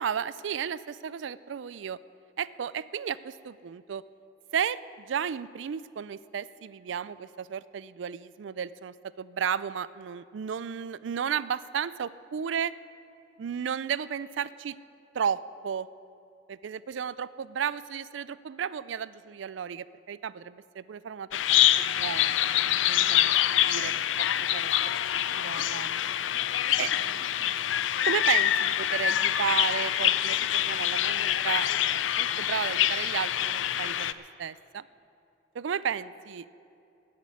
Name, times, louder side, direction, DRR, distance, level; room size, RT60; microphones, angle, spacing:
voice 1, 0.0-2.0 2.4-4.0 4.5-12.7 13.4-14.8 15.1-15.9 16.5-22.3 22.8-23.3 23.6-23.9 24.5-26.0 26.8-26.9 28.1-31.7 32.2-34.8 35.5-36.5, right 7 dB, 75° right, 17 dB, 0.4 m, -33 dB
Bird vocalization bird call bird song, 21.3-34.1, left 11 dB, 85° left, 0.4 m, -26 dB
15.5 x 6.6 x 9.3 m, 2.7 s
head